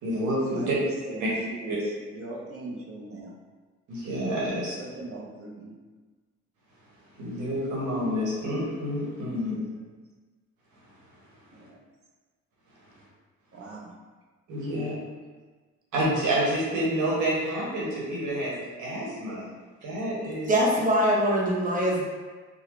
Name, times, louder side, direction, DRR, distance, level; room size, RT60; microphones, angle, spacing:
voice 1, 0.0-0.8 1.2-1.3 1.7-1.8 3.9-4.8 7.2-9.5 14.5-14.9 15.9-19.5 19.8-20.5, right 1 dB, 75° right, -6 dB, 1.4 m, -28 dB
voice 2, 2.2-3.3 5.0-5.7 9.4-9.7 13.5-13.9, right 2 dB, 50° right, -2 dB, 0.7 m, -40 dB
voice 3, 20.5-22.0, equal, 25° right, -4 dB, 1.0 m, -23 dB
4.0 x 2.2 x 3.1 m, 1.4 s
cardioid pair, 90°, 30 cm